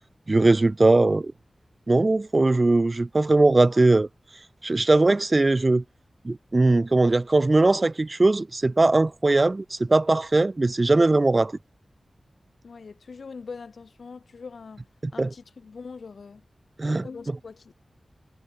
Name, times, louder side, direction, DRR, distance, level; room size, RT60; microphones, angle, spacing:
voice 1, 0.3-1.3 1.9-4.1 4.6-5.8 6.3-11.5 15.2-15.3 16.8-17.0, right 2 dB, 30° right, 0.4 m, -20 dB
voice 2, 12.6-14.8 15.1-16.4 16.9-17.7, left 5 dB, 75° left, 4.5 m, -42 dB
wide cardioid pair, 115°, 0 cm